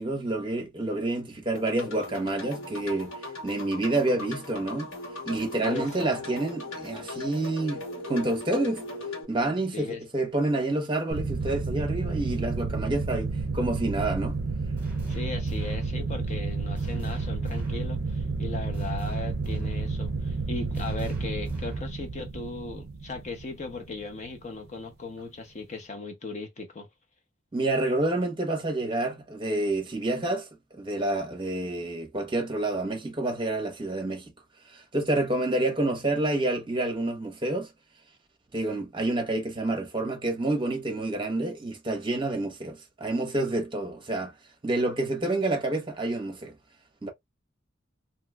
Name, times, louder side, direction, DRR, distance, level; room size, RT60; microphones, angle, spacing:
voice 1, 0.0-3.1 3.4-4.9 5.2-8.9 9.3-14.4 27.5-30.5 30.7-34.3 34.7-37.7 38.5-44.3 44.6-46.5 47.0-47.1, right 2 dB, 25° right, 0.9 m, -28 dB
sound 1, 1.5-9.2, left 2 dB, 80° left, 1.2 m, -38 dB
voice 2, 5.6-6.4 9.7-10.0 15.1-26.9, left 3 dB, 35° left, 0.6 m, -38 dB
sound 2, 11.1-24.3, right 3 dB, 55° right, 0.4 m, -31 dB
sound 3, 14.8-16.0 16.8-17.9 18.7-20.0 20.7-22.0, right 2 dB, 10° right, 1.9 m, -43 dB
3.0 x 2.8 x 2.3 m
head